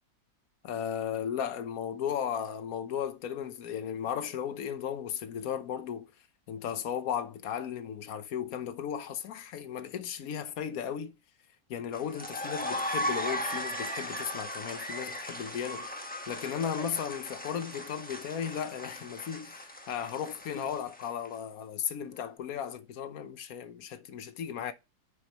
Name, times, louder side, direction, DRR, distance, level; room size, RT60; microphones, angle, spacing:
voice 1, 0.6-6.1 6.5-11.1 11.7-16.0 16.3-24.7, left 8 dB, 60° left, 1.1 m, -35 dB
sound 1, 11.9-21.3, equal, 5° left, 0.9 m, -37 dB
9.7 x 4.8 x 2.9 m
omnidirectional pair, 1.9 m